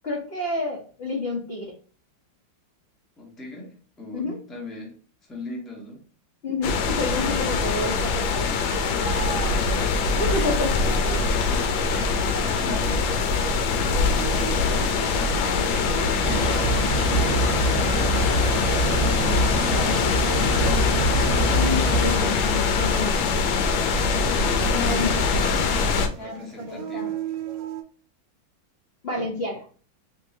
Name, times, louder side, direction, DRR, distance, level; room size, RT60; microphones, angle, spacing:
voice 1, 0.0-1.8 4.1-4.4 6.4-8.5 10.2-10.8 11.1-11.4 15.6-15.9 21.5-23.3 24.7-25.1 26.2-27.1 29.0-29.6, left 2 dB, 65° left, -1 dB, 0.5 m, -30 dB
voice 2, 3.2-4.9 5.2-6.0 9.5-10.4 11.3-11.8 12.6-13.5 13.8-14.9 16.8-21.6 24.2-27.2, left 1 dB, ahead, -2 dB, 0.6 m, -39 dB
sound 1, 6.6-26.1, left 4 dB, 85° left, 1.4 m, -23 dB
sound 2, 8.8-27.8, right 7 dB, 75° right, 1.2 m, -39 dB
sound 3, 16.2-22.2, right 1 dB, 25° left, 1.3 m, -25 dB
3.7 x 2.9 x 2.6 m, 0.41 s
omnidirectional pair, 2.1 m